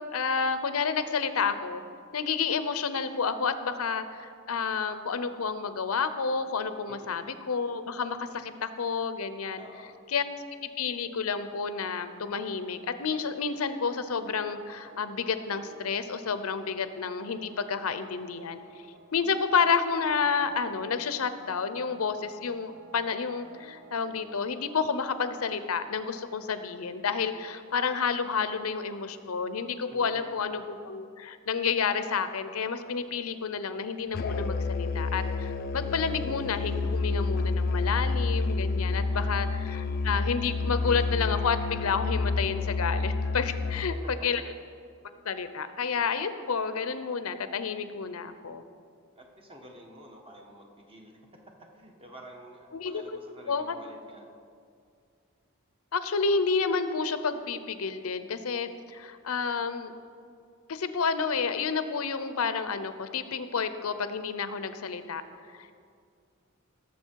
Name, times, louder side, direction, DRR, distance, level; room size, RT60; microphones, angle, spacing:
voice 1, 0.0-1.8 2.1-9.6 10.1-10.3 10.6-18.6 19.1-44.4 45.2-48.6 52.7-53.2 53.5-53.7 55.9-59.9 60.7-65.2 65.5-65.7, left 5 dB, 85° left, 11 dB, 0.7 m, -30 dB
voice 2, 6.9-7.3 9.6-10.0 19.2-19.5 29.9-30.5 39.1-39.5 43.9-44.0 49.2-54.3 59.3-59.4, right 1 dB, 25° right, 1 dB, 1.4 m, -50 dB
sound 1, 12.3-24.7, right 1 dB, 70° right, 1.5 m, -54 dB
Musical instrument, 34.1-44.0, left 3 dB, 45° left, 0.4 m, -29 dB
18.0 x 7.2 x 4.6 m, 2.3 s
head